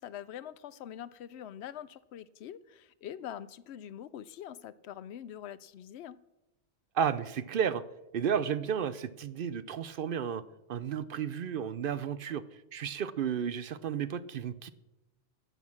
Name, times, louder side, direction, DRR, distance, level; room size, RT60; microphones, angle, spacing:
voice 1, 0.0-6.2, left 10 dB, 75° left, 17 dB, 0.9 m, -44 dB
voice 2, 6.9-7.8 8.1-10.4 10.7-14.7, right 8 dB, 60° right, 15 dB, 0.7 m, -32 dB
10.5 x 8.4 x 7.2 m, 0.95 s
omnidirectional pair, 1.1 m